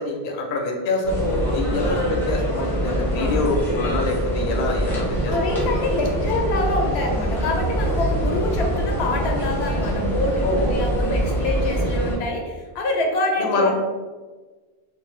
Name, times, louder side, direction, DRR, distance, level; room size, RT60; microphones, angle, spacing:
voice 1, 0.0-5.6 10.4-10.7 13.4-13.7, left 2 dB, 60° left, 0 dB, 0.6 m, -25 dB
sound 1, 1.0-12.2, equal, ahead, 0.6 m, -24 dB
voice 2, 5.3-13.7, left 2 dB, 90° left, 2 dB, 0.8 m, -26 dB
2.6 x 2.4 x 3.0 m, 1.3 s
omnidirectional pair, 1.0 m